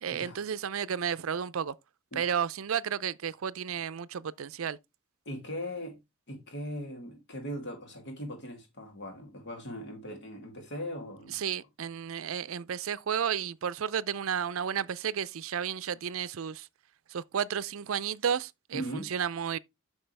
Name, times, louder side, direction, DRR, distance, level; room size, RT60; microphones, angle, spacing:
voice 1, 0.0-1.7 2.2-4.8 11.3-16.7 17.1-19.6, right 8 dB, 75° right, 0.5 m, -32 dB
voice 2, 5.2-6.0 6.3-11.4 18.7-19.1, equal, 60° left, 2.8 m, -39 dB
8.8 x 5.9 x 3.3 m
head